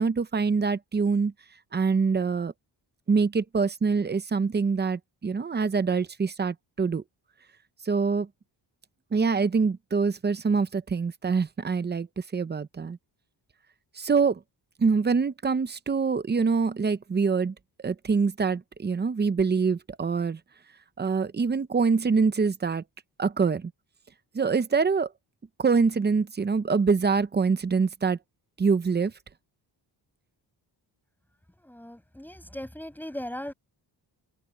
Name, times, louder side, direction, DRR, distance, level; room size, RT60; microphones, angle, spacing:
voice 1, 0.0-1.3 1.7-2.5 3.1-7.0 7.8-8.3 9.1-13.0 14.0-14.4 14.8-17.5 17.8-20.4 21.0-22.8 23.2-23.7 24.3-25.1 25.6-28.2 28.6-29.1, right 5 dB, 25° right, 0.6 m, -25 dB
voice 2, 31.6-33.5, left 1 dB, 5° left, 8.0 m, -38 dB
wide cardioid pair, 170°, 44 cm